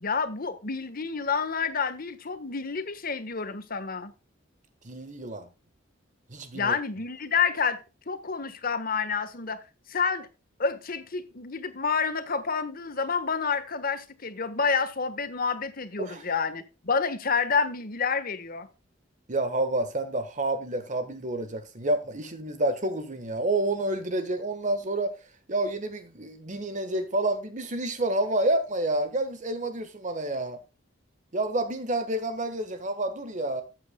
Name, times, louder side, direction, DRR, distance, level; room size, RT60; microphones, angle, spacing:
voice 1, 0.0-4.1 6.5-7.8 8.1-9.6 9.9-10.3 10.6-18.7, left 5 dB, 50° left, 1.4 m, -29 dB
voice 2, 4.8-5.5 6.3-6.7 16.0-16.2 19.3-25.1 25.5-30.6 31.3-33.6, right 2 dB, 40° right, 1.4 m, -29 dB
14.0 x 8.3 x 2.3 m
head